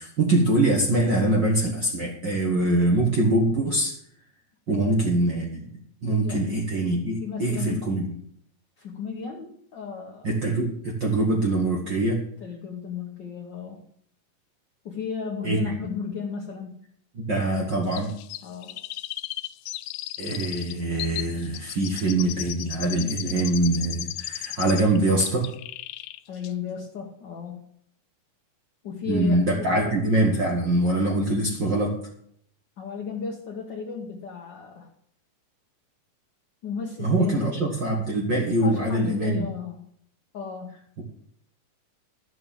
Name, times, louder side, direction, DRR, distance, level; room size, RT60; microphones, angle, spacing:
voice 1, 0.0-3.9 4.7-5.7 6.0-8.1 10.2-12.2 15.4-15.6 17.1-18.1 20.2-25.5 29.1-31.9 37.0-39.5, right 2 dB, 45° right, -1 dB, 1.7 m, -23 dB
voice 2, 4.7-5.2 6.2-6.4 7.2-7.8 8.8-10.3 12.4-13.8 14.8-16.8 18.4-18.8 26.3-27.6 28.8-29.8 32.8-34.9 36.6-37.6 38.6-39.8 40.3-40.7, left 6 dB, 50° left, -1 dB, 1.5 m, -34 dB
Chirp tweet, 17.9-25.0 25.3-26.2 26.4-26.5, left 16 dB, 80° left, 1.7 m, -35 dB
12.0 x 6.7 x 7.3 m, 0.67 s
omnidirectional pair, 3.8 m